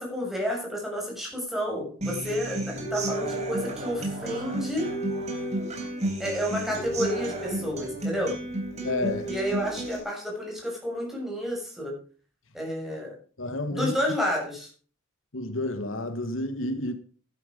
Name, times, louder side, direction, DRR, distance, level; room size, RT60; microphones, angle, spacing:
voice 1, 0.0-4.9 6.2-8.3 9.3-11.9 12.5-13.2 13.7-14.7, equal, ahead, 6.8 m, -30 dB
Human voice / Acoustic guitar, 2.0-10.0, right 1 dB, 35° right, 4.1 m, -32 dB
voice 2, 8.8-9.3 13.4-13.9 15.3-16.9, left 1 dB, 75° left, 1.5 m, -30 dB
12.5 x 11.5 x 5.3 m
head